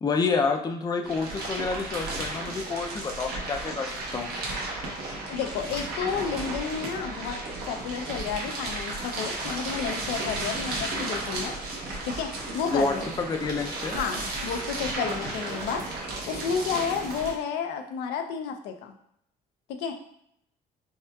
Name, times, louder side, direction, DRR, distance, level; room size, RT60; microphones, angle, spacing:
voice 1, 0.0-4.3 12.7-14.0, left 4 dB, 25° left, 4 dB, 0.4 m, -28 dB
sound 1, 1.0-17.3, right 2 dB, 65° right, 1.0 m, -34 dB
voice 2, 5.3-7.4 7.7-11.5 12.0-13.0 13.9-15.8 16.2-18.9 19.7-20.0, left 6 dB, 90° left, 5 dB, 0.5 m, -31 dB
5.4 x 2.4 x 2.3 m, 0.72 s
cardioid pair, 110°, 17 cm